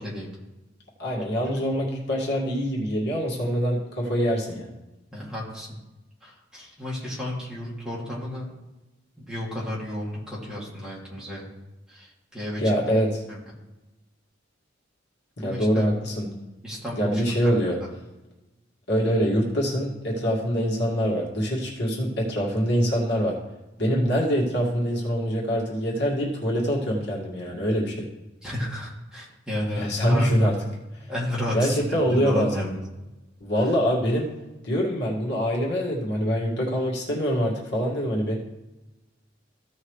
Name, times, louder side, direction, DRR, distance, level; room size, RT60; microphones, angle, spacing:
voice 1, 1.0-4.7 12.6-13.2 15.4-16.3 17.0-17.8 18.9-23.4 23.8-28.1 29.8-30.5 31.5-32.5 33.4-34.3 34.6-38.3, equal, 65° left, -3 dB, 2.0 m, -24 dB
voice 2, 5.1-5.8 6.2-8.5 9.2-11.5 11.9-12.7 13.3-13.4 15.4-15.9 16.6-17.2 17.5-17.6 28.4-30.3 31.1-32.8 33.6-33.7, left 1 dB, 5° right, -6 dB, 2.5 m, -32 dB
15.0 x 5.6 x 3.2 m, 1.0 s
head